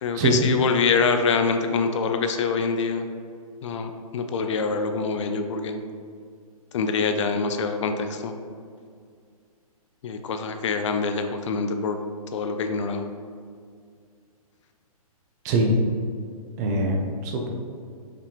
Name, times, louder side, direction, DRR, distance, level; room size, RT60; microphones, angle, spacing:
voice 1, 0.0-3.1 3.6-5.8 6.7-8.3 10.0-12.0 12.3-13.1, left 5 dB, 55° left, 6 dB, 0.4 m, -25 dB
voice 2, 15.4-15.8 16.6-17.5, right 1 dB, 30° right, 2 dB, 0.5 m, -23 dB
4.9 x 3.4 x 2.8 m, 2.2 s
hypercardioid pair, 145°, 19 cm